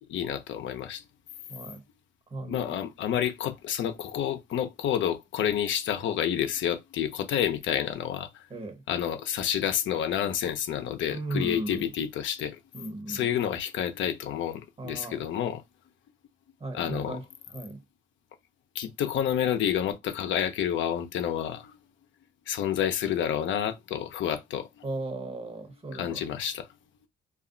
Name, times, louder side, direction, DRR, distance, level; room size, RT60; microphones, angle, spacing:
voice 1, 0.1-1.0 2.5-8.5 8.9-12.6 13.1-15.6 16.7-17.2 18.7-21.8 22.5-24.8 25.9-26.7, left 9 dB, 70° left, 0.6 m, -29 dB
voice 2, 1.5-1.8 2.3-2.7 8.5-8.8 11.1-11.9 12.7-13.3 14.8-15.2 16.6-17.2 17.5-17.8 24.8-26.3, right 2 dB, 30° right, 1.0 m, -36 dB
2.4 x 2.1 x 3.7 m
cardioid pair, 90°, 20 cm